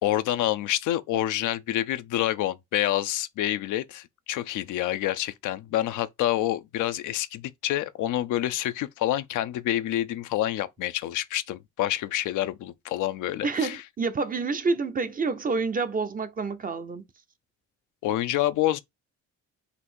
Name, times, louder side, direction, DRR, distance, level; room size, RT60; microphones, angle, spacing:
voice 1, 0.0-13.8 18.0-18.8, left 13 dB, 80° left, 0.5 m, -27 dB
voice 2, 13.4-17.0, right 4 dB, 30° right, 0.6 m, -28 dB
4.0 x 2.6 x 4.3 m
cardioid pair, 90°, 30 cm